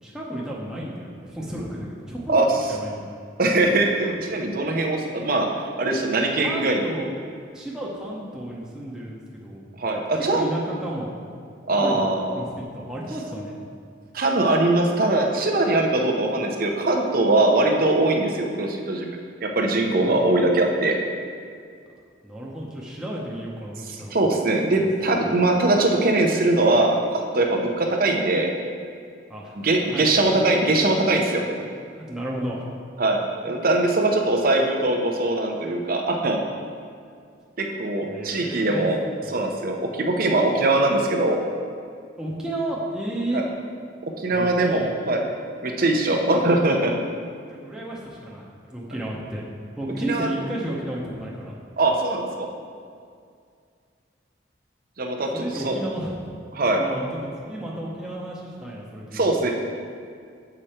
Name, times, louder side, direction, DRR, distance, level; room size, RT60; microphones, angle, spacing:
voice 1, 0.0-2.4 2.7-3.1 6.4-7.1 7.5-9.6 10.0-11.1 11.7-12.1 12.3-13.5 20.0-20.1 22.2-24.2 25.2-25.3 29.3-29.6 29.9-30.1 31.6-31.7 31.9-32.7 38.0-38.9 39.2-39.4 42.2-43.4 44.3-44.9 47.5-49.4 49.8-51.6 55.3-56.1 56.8-59.4, right 1 dB, 5° right, -5 dB, 0.8 m, -32 dB
voice 2, 3.4-5.5 5.8-6.8 9.8-10.4 11.7-12.4 14.1-19.1 19.4-21.0 24.1-28.5 29.6-31.4 33.0-36.4 37.6-39.0 39.3-41.4 43.3-43.4 44.0-45.2 45.6-46.9 50.1-50.3 51.8-52.5 55.0-55.8 56.5-56.8 59.1-59.5, right 2 dB, 50° right, 2 dB, 0.8 m, -21 dB
7.6 x 5.1 x 4.3 m, 2.3 s
head